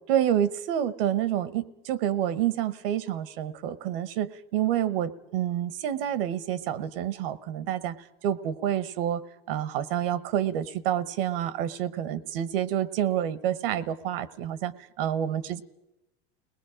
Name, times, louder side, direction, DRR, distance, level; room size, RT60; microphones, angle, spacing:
voice 1, 0.1-8.0 8.2-9.2 9.5-15.6, right 10 dB, 70° right, 17 dB, 1.0 m, -28 dB
29.5 x 20.0 x 5.0 m, 0.92 s
supercardioid pair, 160°, 30 cm